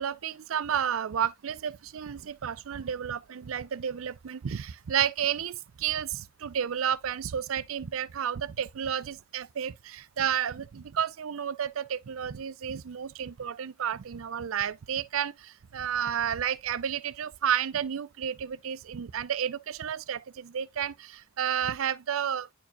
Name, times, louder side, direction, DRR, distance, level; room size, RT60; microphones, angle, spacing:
voice 1, 0.0-22.5, right 8 dB, 70° right, 0.5 m, -31 dB
10.0 x 4.5 x 2.3 m
head